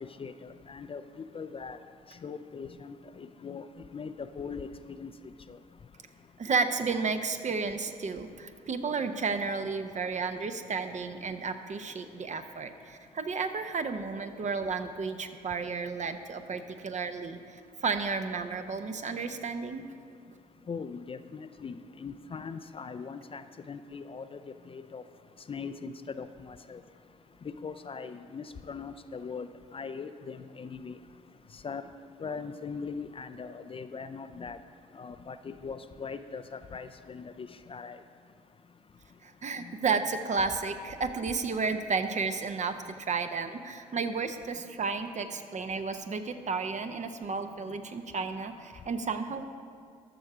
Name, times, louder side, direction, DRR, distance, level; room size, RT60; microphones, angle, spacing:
voice 1, 0.0-1.8 2.2-3.6 3.9-5.1 5.5-5.6 20.7-21.7 22.0-24.4 24.7-25.0 25.5-26.8 27.4-29.5 29.7-31.0 31.6-31.9 32.2-34.6 34.9-38.0 39.6-39.7, left 5 dB, 30° left, 10 dB, 0.5 m, -40 dB
voice 2, 6.4-19.8 39.2-49.5, right 4 dB, 40° right, 8 dB, 0.8 m, -32 dB
12.5 x 6.5 x 4.9 m, 2.2 s
hypercardioid pair, 45°, 19 cm